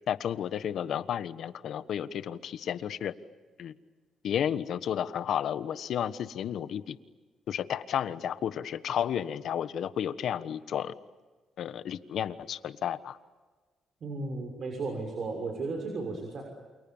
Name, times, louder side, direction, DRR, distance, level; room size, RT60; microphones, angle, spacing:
voice 1, 0.1-3.1 3.6-3.7 4.2-7.0 7.5-10.9 11.6-13.2, left 9 dB, 70° left, 13 dB, 1.3 m, -32 dB
voice 2, 14.0-16.4, right 3 dB, 55° right, 2 dB, 6.3 m, -34 dB
29.0 x 28.5 x 7.2 m, 1.4 s
cardioid pair, 90°, 0 cm